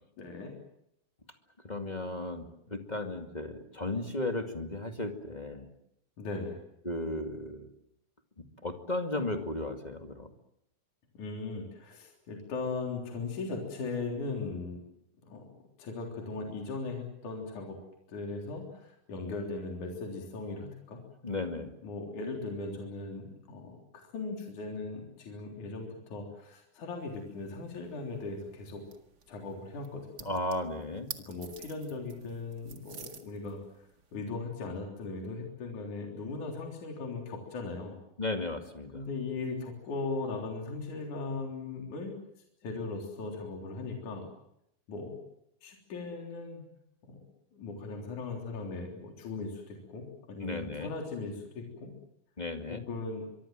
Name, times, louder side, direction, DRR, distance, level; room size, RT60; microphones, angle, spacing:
voice 1, 0.2-0.5 6.2-6.6 11.1-14.8 15.2-17.8 18.1-21.0 21.8-23.8 24.1-28.8 29.3-30.3 31.2-33.6 34.1-38.0 38.9-42.1 42.6-44.3 44.9-45.2 45.6-46.6 47.1-47.2 47.5-51.9 52.7-53.3, left 3 dB, 55° left, 1 dB, 5.0 m, -38 dB
voice 2, 1.6-5.7 6.8-7.7 8.4-10.3 21.2-21.7 30.2-31.1 38.2-39.1 50.4-50.9 52.4-52.8, left 2 dB, 15° left, 5 dB, 1.4 m, -35 dB
sound 1, 27.0-34.2, right 6 dB, 40° right, 1.6 m, -51 dB
24.5 x 24.0 x 7.6 m, 0.76 s
omnidirectional pair, 4.3 m